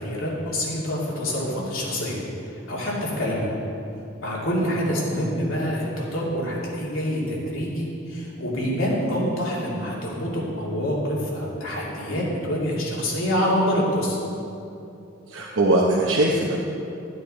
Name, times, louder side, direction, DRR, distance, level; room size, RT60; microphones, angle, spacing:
voice 1, 0.0-3.5 4.2-14.2, equal, 80° left, -5 dB, 2.8 m, -26 dB
voice 2, 15.3-16.6, right 1 dB, 65° right, -3 dB, 1.0 m, -21 dB
12.5 x 8.7 x 4.3 m, 2.7 s
head